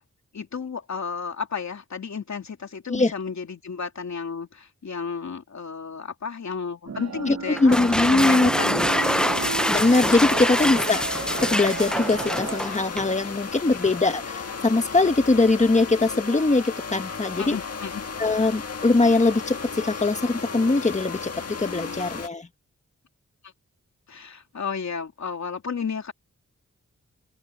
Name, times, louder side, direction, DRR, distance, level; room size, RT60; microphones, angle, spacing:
voice 1, 0.3-9.1 10.3-10.4 14.1-14.2 17.4-18.0 21.9-22.0 24.1-26.1, left 5 dB, 70° left, 3.1 m, -33 dB
sound 1, 6.9-12.6, right 5 dB, 60° right, 1.3 m, -34 dB
voice 2, 7.3-8.5 9.7-17.6 18.2-22.5, left 3 dB, 25° left, 1.5 m, -22 dB
sound 2, 7.5-13.1, equal, 5° left, 0.5 m, -25 dB
sound 3, 8.9-22.3, left 5 dB, 55° left, 1.9 m, -35 dB
wide cardioid pair, 80°, 29 cm